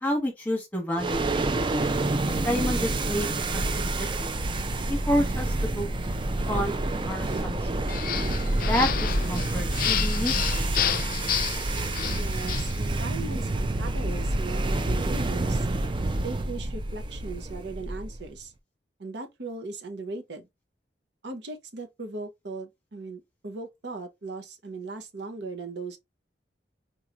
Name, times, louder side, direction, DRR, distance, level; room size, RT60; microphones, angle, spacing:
voice 1, 0.0-1.5 2.4-3.3 3.5-4.4 4.9-5.9 6.5-6.7 7.1-7.8 8.6-10.7, equal, 10° left, 1.2 m, -29 dB
sound 1, 1.0-18.3, right 2 dB, 30° right, 0.4 m, -28 dB
sound 2, 7.9-12.8, left 10 dB, 55° left, 0.4 m, -30 dB
voice 2, 12.1-15.7 16.2-18.5 19.0-20.5 21.2-26.0, right 3 dB, 75° right, 0.8 m, -38 dB
3.8 x 3.0 x 2.4 m
head